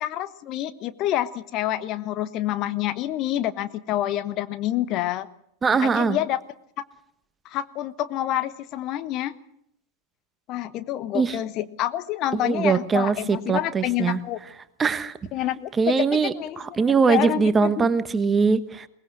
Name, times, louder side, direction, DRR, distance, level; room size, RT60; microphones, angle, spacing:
voice 1, 0.0-5.3 5.7-6.4 6.8-6.9 7.4-9.3 10.5-14.4 15.3-15.7 16.0-17.9, left 13 dB, 35° left, 12 dB, 1.1 m, -28 dB
voice 2, 5.6-6.2 11.1-11.3 12.3-14.2 14.8-15.1 15.8-18.9, right 5 dB, 15° right, 13 dB, 1.2 m, -22 dB
22.5 x 20.0 x 6.3 m, 0.73 s
figure-of-eight pair, 90°, 0 cm